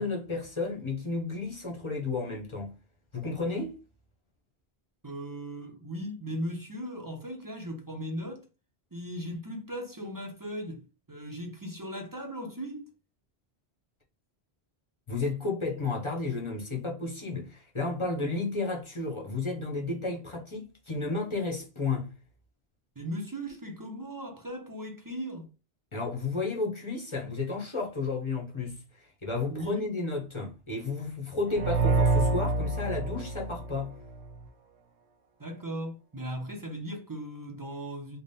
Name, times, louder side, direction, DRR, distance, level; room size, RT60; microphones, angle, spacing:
voice 1, 0.0-2.7 3.1-3.8 15.1-22.1 25.9-33.9, left 3 dB, 30° left, 0.7 m, -32 dB
voice 2, 5.0-8.4 8.9-10.8 11.1-12.9 23.0-25.5 29.5-29.9 35.4-38.2, equal, 25° right, 0.5 m, -37 dB
sound 1, 31.5-34.3, right 3 dB, 85° right, 0.9 m, -27 dB
3.4 x 2.1 x 3.9 m
omnidirectional pair, 1.1 m